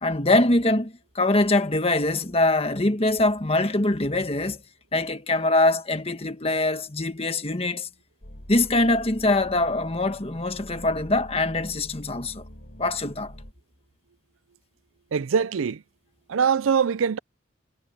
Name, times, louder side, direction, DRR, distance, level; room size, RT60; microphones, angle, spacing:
voice 1, 0.0-4.6 4.9-7.9 8.5-12.4 12.8-13.3, left 2 dB, 30° left, 1.5 m, -23 dB
sound 1, 8.2-13.5, equal, 50° left, 4.4 m, -44 dB
voice 2, 15.1-15.8 16.3-17.2, right 6 dB, 90° right, 0.5 m, -23 dB
head